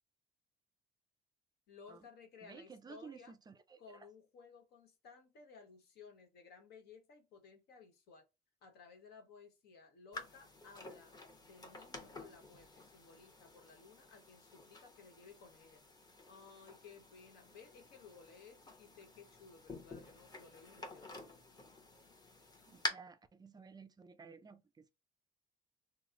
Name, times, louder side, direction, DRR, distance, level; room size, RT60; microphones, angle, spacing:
voice 1, 1.7-3.3 3.8-8.2 8.6-11.1 11.5-15.8 16.3-21.3, left 5 dB, 70° left, 1.1 m, -58 dB
voice 2, 2.4-4.1 22.7-24.9, right 5 dB, 25° right, 0.4 m, -55 dB
sound 1, 10.1-22.9, left 3 dB, 25° left, 0.9 m, -49 dB
3.0 x 2.0 x 3.7 m
cardioid pair, 110°, 17 cm